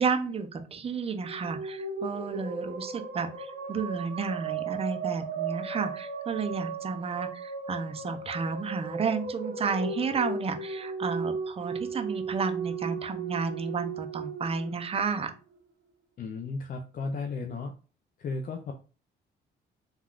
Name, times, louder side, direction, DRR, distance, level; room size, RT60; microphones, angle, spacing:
voice 1, 0.0-15.3, right 5 dB, 30° right, 7 dB, 0.5 m, -32 dB
sound 1, 1.1-15.6, right 5 dB, 80° right, 0.7 m, -36 dB
voice 2, 16.2-17.7 18.2-18.7, left 4 dB, 45° left, 4 dB, 0.4 m, -34 dB
3.4 x 2.3 x 2.3 m, 0.36 s
cardioid pair, 90°, 20 cm